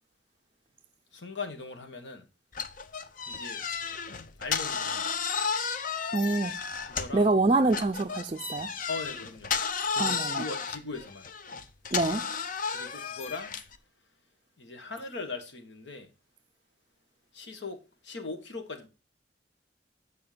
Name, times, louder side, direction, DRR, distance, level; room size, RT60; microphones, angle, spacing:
voice 1, 1.1-2.2 3.3-3.6 4.4-5.3 6.9-7.3 8.9-9.5 9.9-11.2 12.7-13.5 14.6-16.1 17.3-18.9, left 3 dB, 90° left, 1.6 m, -40 dB
sound 1, 2.5-7.3 7.7-13.8, left 6 dB, 50° left, 0.6 m, -33 dB
voice 2, 6.1-6.6 7.1-8.7 10.0-10.4 11.9-12.2, right 2 dB, 30° right, 0.4 m, -26 dB
9.2 x 4.5 x 5.1 m
head